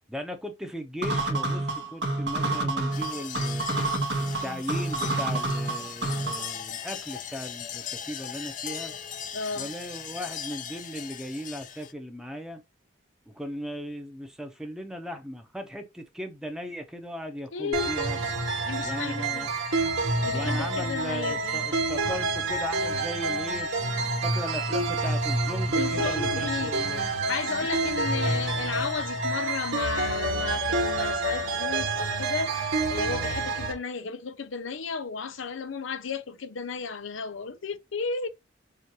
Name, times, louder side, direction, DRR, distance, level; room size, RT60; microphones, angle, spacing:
voice 1, 0.1-3.7 4.4-8.9 9.6-12.6 13.3-18.2 18.8-19.5 20.3-23.7 24.2-27.0 28.2-28.4, equal, 5° right, 0.8 m, -37 dB
sound 1, 1.0-6.6, right 2 dB, 60° right, 1.4 m, -28 dB
sound 2, 2.9-11.9, left 8 dB, 40° left, 0.5 m, -39 dB
voice 2, 4.2-4.6 9.3-9.7 17.5-17.9 18.6-19.5 20.2-21.7 25.7-38.3, left 5 dB, 80° left, 0.6 m, -34 dB
sound 3, 17.7-33.7, right 2 dB, 85° right, 1.6 m, -28 dB
6.8 x 2.6 x 3.0 m
head